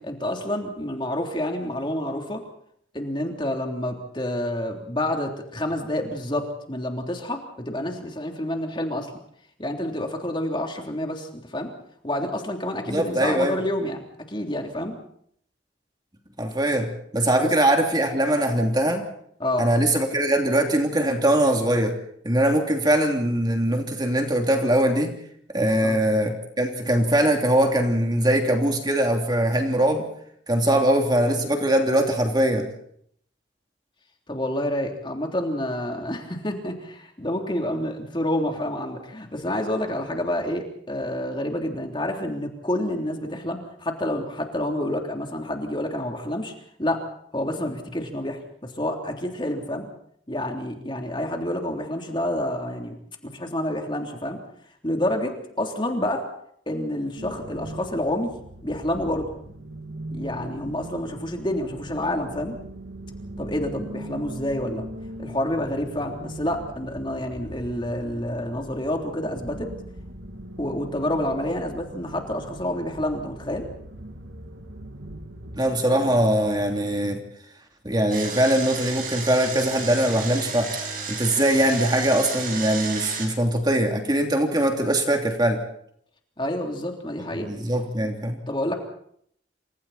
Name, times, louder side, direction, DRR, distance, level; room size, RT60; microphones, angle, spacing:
voice 1, 0.0-2.4 2.9-9.1 9.6-11.7 12.0-14.0 14.3-15.0 17.4-17.5 19.4-19.7 25.8-26.0 30.7-30.8 34.3-46.5 46.8-47.1 47.3-49.9 50.3-52.9 53.2-54.4 54.8-56.3 56.7-58.4 58.6-59.3 60.1-62.6 63.4-64.9 65.2-69.7 70.6-73.7 86.4-87.5 88.5-88.7, left 1 dB, 25° left, 2 dB, 3.3 m, -28 dB
voice 2, 12.9-13.6 16.4-19.1 19.6-21.9 22.2-25.1 25.5-30.1 30.5-32.7 75.6-77.2 77.8-80.7 81.1-85.6 87.4-88.4, right 1 dB, 20° right, 3 dB, 3.0 m, -22 dB
sound 1, 57.2-75.6, right 1 dB, 75° right, 2.7 m, -40 dB
Engine, 78.1-83.3, right 5 dB, 45° right, 6.7 m, -33 dB
28.5 x 26.5 x 4.3 m, 0.67 s
head